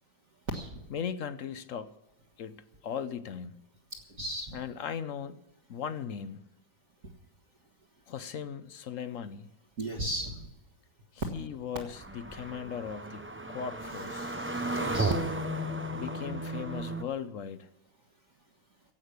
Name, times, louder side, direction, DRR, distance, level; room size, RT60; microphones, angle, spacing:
voice 1, 0.9-1.9 2.4-3.6 4.5-5.4 5.7-6.4 8.1-9.5 11.1-14.3 15.9-17.7, left 7 dB, 60° left, 12 dB, 1.0 m, -38 dB
voice 2, 4.2-4.6 9.8-10.5 14.2-15.1, right 1 dB, 55° right, -2 dB, 2.1 m, -36 dB
sound 1, 12.0-17.0, right 1 dB, 15° right, 0.4 m, -34 dB
16.0 x 8.5 x 8.2 m, 0.93 s
omnidirectional pair, 1.8 m